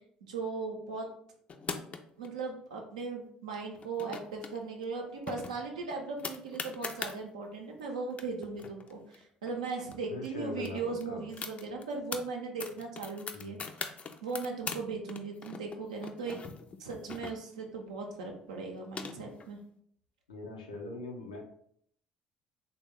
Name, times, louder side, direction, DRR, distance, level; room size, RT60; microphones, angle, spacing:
voice 1, 0.2-1.1 2.2-13.9 14.2-16.4 16.8-19.6, right 4 dB, 85° right, 1 dB, 0.6 m, -38 dB
sound 1, 1.5-2.3 3.8-4.5 4.8-4.9 5.3-7.2 7.8-7.9 8.1-9.9 10.2-10.3 10.6-12.2 12.6-14.8 15.1-17.7 18.5-19.5, left 5 dB, 40° left, 0.4 m, -41 dB
voice 2, 10.1-11.2 13.3-13.6 20.3-21.4, left 2 dB, 90° left, 1 dB, 0.5 m, -41 dB
3.3 x 2.1 x 3.5 m, 0.66 s
hypercardioid pair, 55°, 4 cm